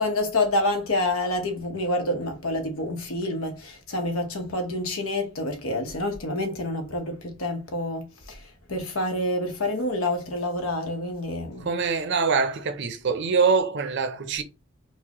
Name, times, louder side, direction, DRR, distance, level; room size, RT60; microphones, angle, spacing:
voice 1, 0.0-8.4 8.7-11.7, left 1 dB, 80° left, 1.0 m, -28 dB
voice 2, 11.6-14.4, right 5 dB, 55° right, 0.6 m, -24 dB
4.6 x 2.2 x 2.9 m
head